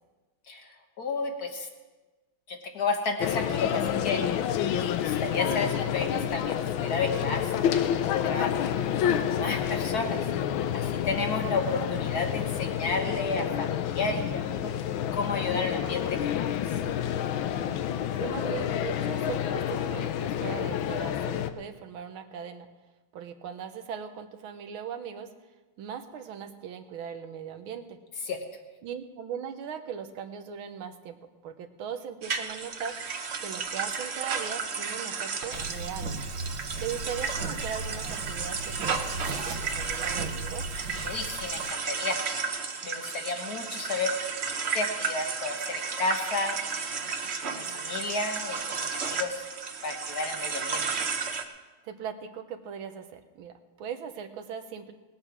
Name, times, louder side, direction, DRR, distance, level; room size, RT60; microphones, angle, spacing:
voice 1, 1.0-1.7 2.5-4.2 4.7-7.8 8.3-10.2 10.7-14.8 15.1-16.5 28.3-28.4 35.5-35.7 36.7-36.8 41.0-42.2 42.8-44.1 44.7-46.6 47.5-49.4 49.8-51.0, left 3 dB, 50° left, 4 dB, 1.7 m, -32 dB
sound 1, 3.2-21.5, left 10 dB, 80° left, 1.5 m, -29 dB
voice 2, 18.2-22.7 23.1-25.3 25.8-28.0 28.8-31.2 31.4-33.0 33.4-36.1 36.8-40.7 51.8-54.9, right 8 dB, 90° right, 8 dB, 1.8 m, -39 dB
sound 2, 32.2-51.4, right 5 dB, 45° right, 0.9 m, -33 dB
sound 3, 35.5-41.7, right 2 dB, 65° right, 1.8 m, -37 dB
19.0 x 8.8 x 6.0 m, 1.2 s
omnidirectional pair, 2.2 m